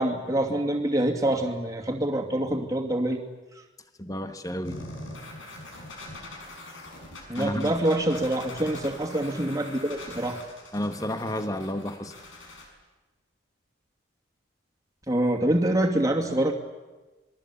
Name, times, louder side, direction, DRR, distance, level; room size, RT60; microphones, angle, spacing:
voice 1, 0.0-3.2 7.3-10.4 15.1-16.5, right 1 dB, 15° right, 2 dB, 2.5 m, -25 dB
voice 2, 4.0-4.9 7.3-7.8 10.7-12.1, left 1 dB, 15° left, 9 dB, 1.3 m, -31 dB
sound 1, 4.6-12.6, left 2 dB, 70° left, 6.0 m, -43 dB
26.5 x 21.5 x 8.6 m, 1.2 s
head